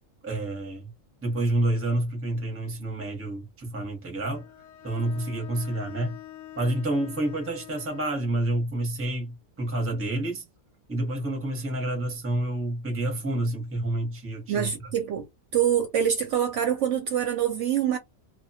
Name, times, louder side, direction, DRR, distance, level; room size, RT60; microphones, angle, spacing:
voice 1, 0.2-0.9 1.2-4.5 4.8-6.2 6.6-10.4 10.9-14.7, right 1 dB, 15° right, 0.6 m, -29 dB
Bowed string instrument, 4.3-8.3, left 13 dB, 65° left, 0.8 m, -45 dB
voice 2, 14.5-15.2 15.5-18.0, right 9 dB, 65° right, 0.8 m, -25 dB
2.2 x 2.2 x 2.6 m
omnidirectional pair, 1.5 m